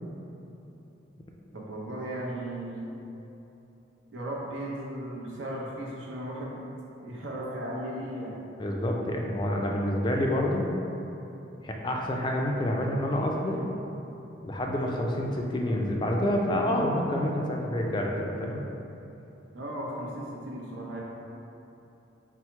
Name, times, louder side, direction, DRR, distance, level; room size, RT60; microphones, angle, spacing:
voice 1, 1.5-2.9 4.1-6.6 7.0-8.3 19.5-21.0, right 1 dB, 75° right, -5 dB, 0.8 m, -36 dB
voice 2, 8.6-10.6 11.6-13.6 14.4-18.6, left 1 dB, 25° left, 0 dB, 0.3 m, -28 dB
4.4 x 2.0 x 4.4 m, 3.0 s
head